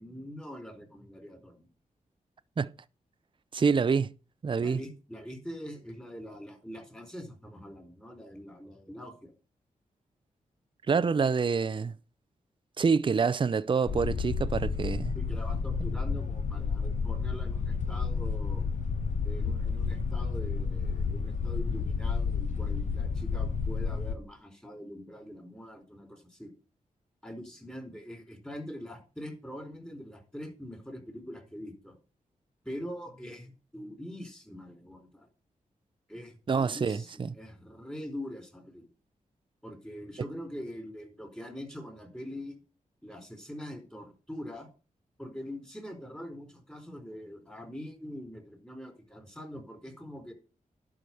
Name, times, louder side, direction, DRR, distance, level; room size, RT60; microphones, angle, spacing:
voice 1, 0.0-1.7 4.6-9.3 15.1-18.7 19.2-26.5 27.2-32.0 32.6-35.3 36.1-38.9 39.6-42.6 43.0-44.7 45.2-50.3, equal, 5° left, 4.3 m, -43 dB
voice 2, 3.5-4.1 4.4-4.8 10.9-12.0 12.8-15.1 36.5-37.4, right 5 dB, 35° right, 0.5 m, -27 dB
sound 1, 13.9-24.2, left 5 dB, 60° left, 1.1 m, -31 dB
11.0 x 5.0 x 7.8 m
cardioid pair, 80°, 14 cm